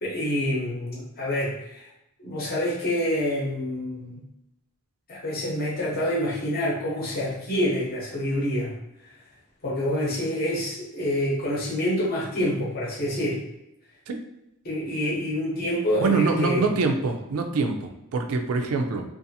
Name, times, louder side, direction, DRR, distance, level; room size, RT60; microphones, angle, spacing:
voice 1, 0.0-1.9 2.2-4.2 5.1-8.8 9.0-9.2 9.6-13.4 14.6-16.8, left 1 dB, 45° left, -6 dB, 0.8 m, -27 dB
voice 2, 16.0-19.0, right 4 dB, 70° right, 4 dB, 0.4 m, -24 dB
2.6 x 2.4 x 2.7 m, 0.88 s
head